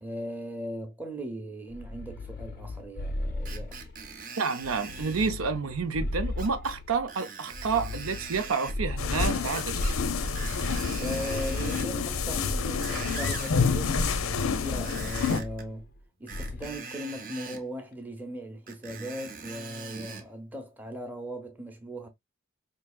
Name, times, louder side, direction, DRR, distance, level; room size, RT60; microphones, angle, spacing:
voice 1, 0.0-3.9 11.0-15.8 16.2-22.1, equal, 10° right, 0.7 m, -38 dB
sound 1, 1.7-4.1 4.6-7.1 7.5-9.7 10.2-12.0 12.7-13.6 13.9-14.4 15.3-16.0 16.3-16.8, left 2 dB, 45° left, 0.4 m, -38 dB
Screech, 3.5-5.4 6.4-6.8 7.1-8.8 9.5-10.0 10.3-11.9 12.5-13.6 14.7-15.7 16.3-17.6 18.7-20.3 20.9-21.0, right 5 dB, 40° right, 0.8 m, -42 dB
voice 2, 4.4-9.8, right 5 dB, 90° right, 0.6 m, -29 dB
sound 2, 9.0-15.4, left 5 dB, 90° left, 0.6 m, -28 dB
4.6 x 2.8 x 2.3 m
head